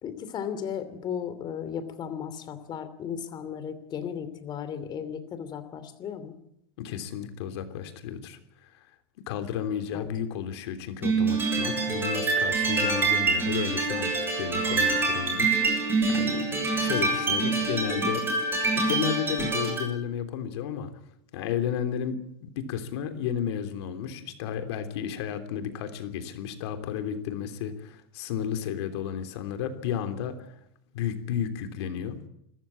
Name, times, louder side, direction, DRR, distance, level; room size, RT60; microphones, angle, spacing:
voice 1, 0.0-6.3 9.9-10.1, left 8 dB, 30° left, 12 dB, 2.9 m, -35 dB
voice 2, 6.8-8.8 9.3-15.8 16.1-18.2 18.7-20.9 21.3-30.4 30.9-32.2, left 9 dB, 75° left, 8 dB, 3.3 m, -33 dB
sound 1, 11.0-19.9, right 3 dB, 15° right, 6.7 m, -26 dB
26.5 x 14.5 x 8.6 m, 0.76 s
supercardioid pair, 150°, 14 cm